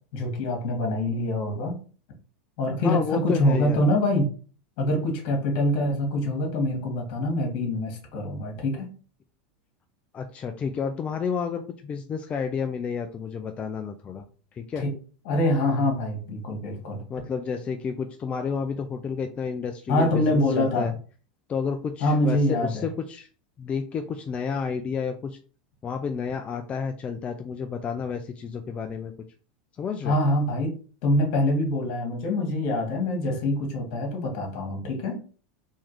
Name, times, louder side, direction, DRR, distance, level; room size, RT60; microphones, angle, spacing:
voice 1, 0.1-1.8 2.6-4.3 4.8-8.9 14.8-14.9 15.3-17.0 19.9-20.9 22.0-22.9 30.0-30.7 31.0-35.2, left 1 dB, 55° left, 1 dB, 1.7 m, -25 dB
voice 2, 2.8-3.8 10.1-14.3 14.5-14.8 17.1-20.9 21.5-23.3 23.6-25.4 25.8-29.1 29.8-30.2, left 6 dB, 25° left, 5 dB, 0.4 m, -30 dB
3.6 x 3.1 x 3.1 m, 0.39 s
supercardioid pair, 125°, 5 cm